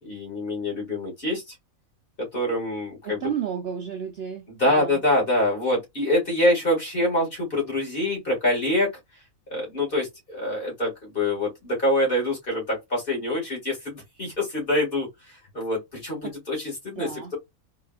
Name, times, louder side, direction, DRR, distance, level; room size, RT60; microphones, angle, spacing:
voice 1, 0.0-1.5 2.3-3.2 4.5-8.9 9.5-15.1 15.5-17.1, left 1 dB, 40° left, 2.1 m, -25 dB
voice 2, 3.0-5.0 16.2-16.3 17.0-17.3, right 8 dB, 60° right, 0.7 m, -32 dB
3.8 x 2.8 x 2.3 m
omnidirectional pair, 1.4 m